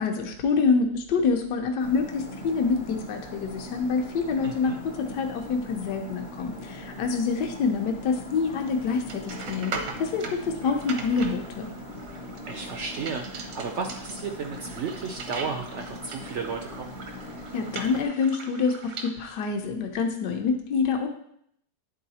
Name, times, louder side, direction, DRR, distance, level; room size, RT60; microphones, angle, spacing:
voice 1, 0.0-9.7 10.0-11.7 17.5-21.1, left 5 dB, 75° left, 3 dB, 1.4 m, -26 dB
sound 1, 1.8-18.0, left 1 dB, 40° left, 0.5 m, -41 dB
voice 2, 4.4-4.8 12.5-16.9, right 5 dB, 75° right, 4 dB, 0.6 m, -34 dB
sound 2, 8.7-19.1, right 4 dB, 90° right, 1.6 m, -40 dB
10.0 x 3.9 x 4.2 m, 0.69 s
omnidirectional pair, 1.9 m